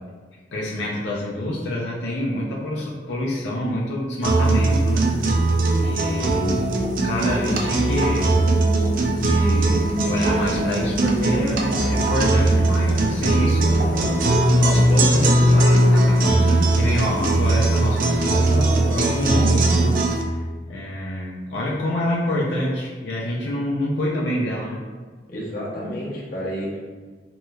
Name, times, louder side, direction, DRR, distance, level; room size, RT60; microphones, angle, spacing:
voice 1, 0.5-5.1 5.3-5.5 5.8-6.7 7.0-8.4 9.2-14.2 14.6-20.0 20.3-20.4 20.7-24.8, left 1 dB, 90° left, -5 dB, 0.5 m, -26 dB
sound 1, 4.2-20.2, right 1 dB, 50° right, 0.4 m, -19 dB
voice 2, 5.9-6.4 25.3-26.8, equal, 55° left, -5 dB, 0.8 m, -31 dB
sound 2, 8.1-19.3, equal, 10° left, 0.7 m, -36 dB
3.1 x 3.0 x 2.3 m, 1.5 s
head